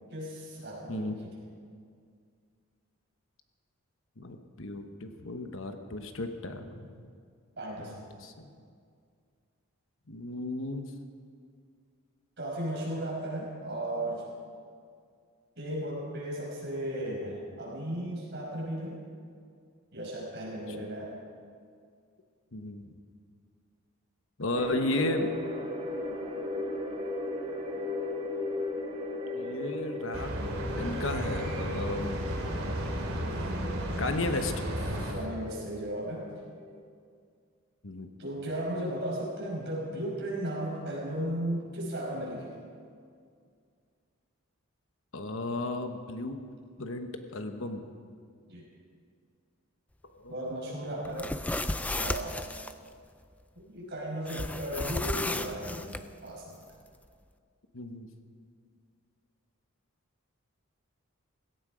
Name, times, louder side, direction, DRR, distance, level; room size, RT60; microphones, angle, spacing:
voice 1, 0.1-1.3 7.6-8.0 12.4-14.2 15.6-19.0 19.9-21.1 35.1-36.3 38.2-42.5 48.5-48.7 50.3-51.3 51.9-52.4 53.6-55.9 56.2-56.6, right 1 dB, 50° right, -4 dB, 5.5 m, -35 dB
voice 2, 0.9-1.2 4.2-7.1 7.8-8.5 10.1-10.9 20.8-20.9 22.5-23.0 24.4-25.3 29.3-30.3 30.8-32.2 34.0-35.1 37.8-38.1 45.1-46.4 46.8-47.9 50.2-51.1 57.7-58.1, left 2 dB, 65° left, 7 dB, 1.1 m, -34 dB
sound 1, 24.5-36.7, left 2 dB, 25° right, 1.2 m, -37 dB
sound 2, 30.1-35.1, right 1 dB, 75° right, 2.9 m, -33 dB
sound 3, 51.1-52.7 54.3-56.0, left 1 dB, 5° left, 0.3 m, -33 dB
17.0 x 16.0 x 5.0 m, 2.2 s
head